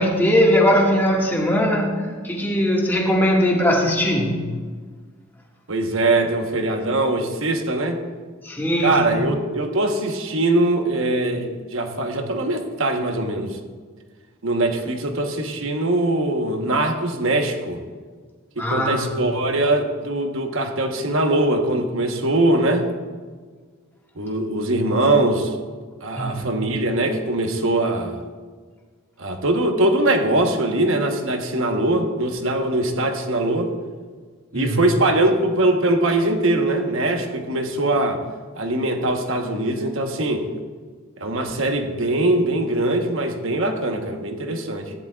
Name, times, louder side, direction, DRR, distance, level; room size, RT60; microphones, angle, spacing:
voice 1, 0.0-4.5 8.4-9.4 18.6-19.1 26.2-26.6 34.5-34.8, equal, 10° left, -3 dB, 1.7 m, -20 dB
voice 2, 5.7-8.0 8.8-13.6 14.4-17.8 18.6-22.9 24.2-25.5 26.0-28.2 29.2-33.7 34.5-38.2 38.6-40.5 41.2-44.9, right 2 dB, 65° right, 5 dB, 1.1 m, -22 dB
14.5 x 10.0 x 2.4 m, 1.5 s
head